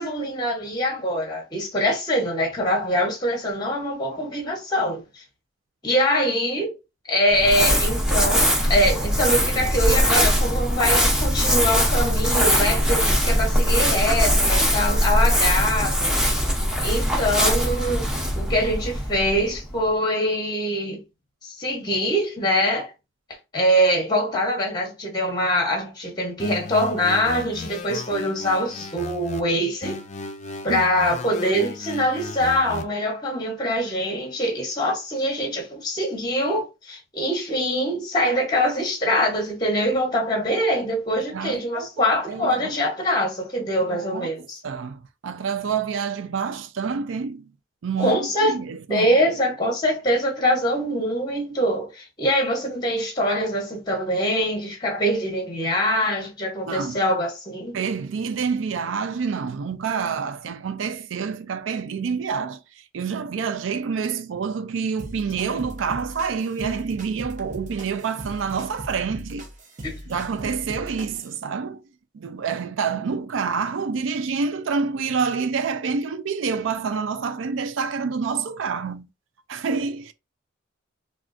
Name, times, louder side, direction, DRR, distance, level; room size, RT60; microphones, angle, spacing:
voice 1, 0.0-5.2 5.8-6.7 7.1-16.1 16.8-18.0 18.4-21.0 21.4-22.9 23.5-30.0 30.6-44.6 48.0-48.6 48.9-57.8 69.8-70.0, equal, 20° left, 0.9 m, -23 dB
Crumpling crinkling, 7.3-19.8, equal, 5° right, 0.7 m, -21 dB
sound 1, 26.4-29.4 29.8-32.8, left 3 dB, 35° left, 0.4 m, -35 dB
voice 2, 41.3-42.8 43.9-44.3 44.6-47.5 47.8-49.2 56.7-57.0 57.7-69.5 70.1-71.8 72.1-79.1 79.5-80.1, right 5 dB, 75° right, 0.4 m, -28 dB
sound 2, 65.0-71.4, right 1 dB, 40° right, 0.8 m, -39 dB
3.6 x 2.3 x 2.5 m
head